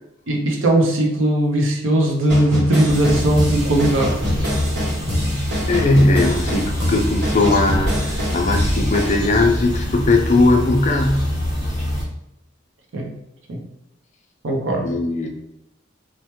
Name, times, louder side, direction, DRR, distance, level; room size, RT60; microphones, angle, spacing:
voice 1, 0.3-4.1 12.9-13.1 13.5-13.6 14.4-14.9, right 1 dB, 90° right, 1 dB, 0.7 m, -18 dB
sound 1, 2.3-9.1, equal, 60° right, 0.9 m, -25 dB
sound 2, 2.9-12.0, left 1 dB, 25° right, 1.0 m, -25 dB
voice 2, 5.7-11.3 14.8-15.3, left 2 dB, 40° left, 2 dB, 0.5 m, -18 dB
3.2 x 2.1 x 2.9 m, 0.85 s
head